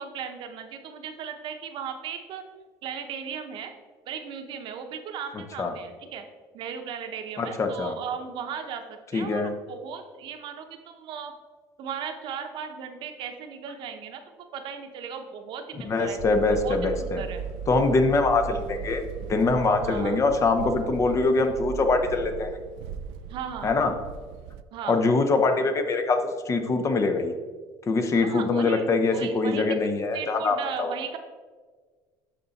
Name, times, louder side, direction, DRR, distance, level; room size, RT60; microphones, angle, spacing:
voice 1, 0.0-2.4 2.8-3.7 4.1-6.2 6.5-11.3 11.8-17.4 19.8-20.2 23.3-23.7 24.7-25.1 28.1-29.7 30.1-31.2, right 7 dB, 60° right, 6 dB, 0.9 m, -37 dB
voice 2, 7.4-8.0 9.1-9.5 15.8-17.2 17.7-19.0 19.3-22.5 23.6-23.9 24.9-27.3 27.9-30.9, left 3 dB, 35° left, 7 dB, 0.9 m, -23 dB
sound 1, 16.2-24.6, right 7 dB, 85° right, 0.4 m, -37 dB
11.5 x 3.9 x 4.1 m, 1.5 s
cardioid pair, 115°, 9 cm